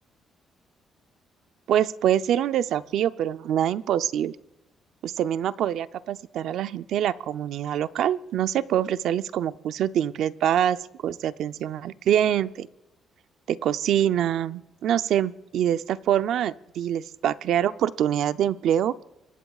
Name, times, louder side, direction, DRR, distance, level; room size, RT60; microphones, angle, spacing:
voice 1, 1.7-4.4 5.0-10.8 11.0-12.7 13.5-18.9, right 10 dB, 75° right, 13 dB, 0.5 m, -25 dB
25.0 x 19.0 x 2.4 m, 0.96 s
cardioid pair, 90°, 0 cm